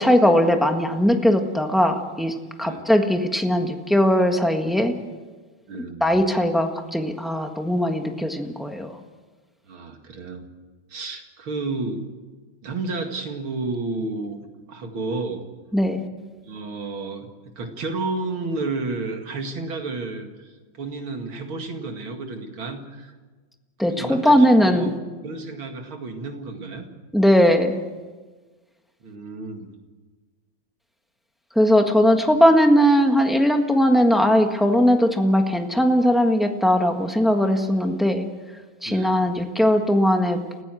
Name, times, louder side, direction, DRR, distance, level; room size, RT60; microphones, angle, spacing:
voice 1, 0.0-4.9 6.0-9.0 15.7-16.1 23.8-24.9 27.1-27.8 31.5-38.2 38.8-40.4, equal, ahead, 4 dB, 1.2 m, -19 dB
voice 2, 5.7-6.2 9.7-10.5 10.9-12.1 12.6-14.4 14.7-15.4 16.4-23.1 23.8-24.9 25.2-26.9 29.0-29.7 31.9-32.2 38.9-39.2, right 3 dB, 75° right, 4 dB, 2.9 m, -31 dB
29.0 x 15.5 x 7.7 m, 1.4 s
omnidirectional pair, 2.3 m